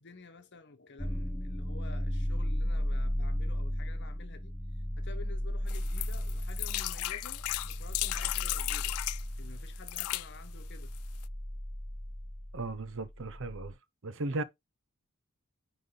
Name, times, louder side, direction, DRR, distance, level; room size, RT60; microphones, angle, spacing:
voice 1, 0.0-4.5 5.0-9.0 9.4-10.9, left 3 dB, 55° left, 1.3 m, -51 dB
sound 1, 1.0-13.7, equal, 5° left, 0.6 m, -35 dB
sound 2, 5.7-9.2 9.8-10.3 10.9-11.0 11.2-11.3, left 18 dB, 85° left, 0.3 m, -35 dB
voice 2, 12.5-13.7 14.0-14.4, right 2 dB, 65° right, 0.8 m, -36 dB
9.4 x 3.4 x 3.8 m
head